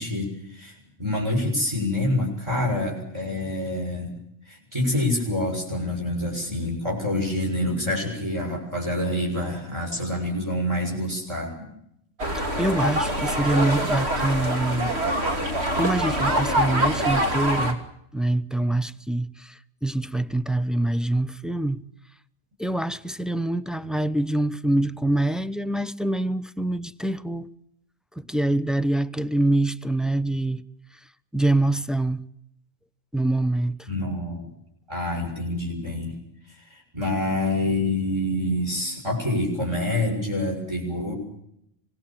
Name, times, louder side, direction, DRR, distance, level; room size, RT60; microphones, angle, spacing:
voice 1, 0.0-4.1 4.5-11.7 33.9-34.5 34.9-36.1 36.5-41.1, left 1 dB, 20° right, 7.3 m, -27 dB
sound 1, 12.2-17.7, right 1 dB, 50° right, 3.2 m, -24 dB
voice 2, 12.6-14.9 15.8-17.8 18.1-21.8 22.6-27.5 28.1-30.6 30.9-31.0 31.3-32.2 33.1-33.9, right 1 dB, ahead, 0.6 m, -25 dB
26.0 x 19.5 x 7.6 m
omnidirectional pair, 1.4 m